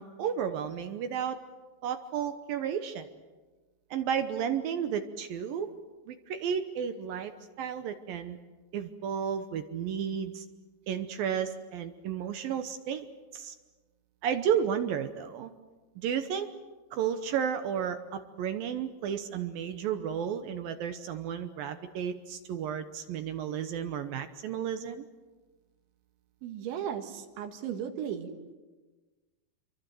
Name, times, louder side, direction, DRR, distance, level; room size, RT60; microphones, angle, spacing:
voice 1, 0.0-1.4 1.8-3.1 3.9-5.7 6.1-7.3 7.6-8.4 8.7-10.5 10.9-13.1 13.3-13.6 14.2-15.5 16.0-16.5 16.9-25.1, right 8 dB, 70° right, 9 dB, 2.3 m, -32 dB
voice 2, 26.4-28.3, right 9 dB, 90° right, 5 dB, 4.3 m, -36 dB
27.5 x 24.0 x 7.7 m, 1.3 s
omnidirectional pair, 5.1 m